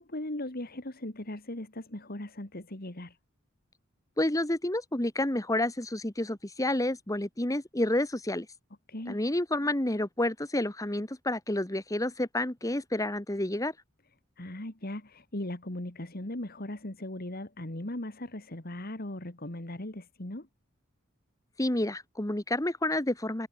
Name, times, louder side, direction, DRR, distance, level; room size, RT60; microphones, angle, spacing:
voice 1, 0.0-3.2 8.9-9.2 14.4-20.5, left 1 dB, 45° left, 2.4 m, -38 dB
voice 2, 4.2-8.5 9.1-13.7 21.6-23.5, left 1 dB, 15° left, 1.4 m, -29 dB
head